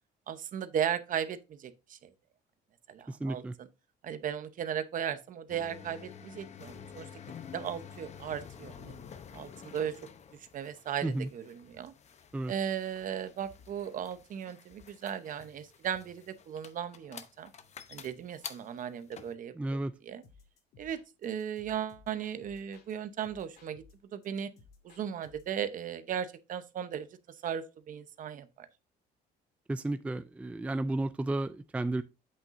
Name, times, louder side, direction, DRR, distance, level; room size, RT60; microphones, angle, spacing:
voice 1, 0.3-2.1 2.9-3.7 4.0-7.1 7.5-8.9 9.3-9.9 10.5-11.9 12.5-17.5 17.9-19.5 20.1-20.2 20.8-23.8 24.1-24.5 24.8-27.1 27.4-28.7, right 9 dB, 50° right, 0.8 m, -36 dB
voice 2, 3.1-3.5 11.0-11.3 12.3-12.5 19.5-19.9 29.7-32.0, right 2 dB, 10° right, 0.4 m, -33 dB
sound 1, 5.5-19.3, left 7 dB, 40° left, 0.8 m, -49 dB
sound 2, 20.2-22.9 23.2-25.6, left 5 dB, 70° left, 2.1 m, -59 dB
8.2 x 6.2 x 2.6 m
cardioid pair, 110°, 17 cm